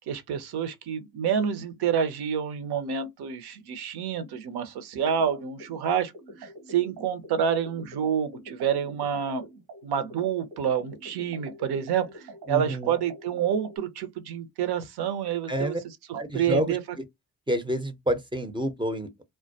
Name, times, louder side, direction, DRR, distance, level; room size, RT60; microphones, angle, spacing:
voice 1, 0.1-6.1 6.4-9.5 9.8-15.7 16.1-16.8, right 8 dB, 55° right, 0.7 m, -28 dB
sound 1, 5.3-13.8, right 1 dB, 85° right, 1.2 m, -46 dB
voice 2, 12.5-12.9 15.5-15.8 16.1-17.0 17.5-19.2, right 1 dB, 10° right, 0.6 m, -29 dB
2.2 x 2.1 x 2.6 m
hypercardioid pair, 45°, 46 cm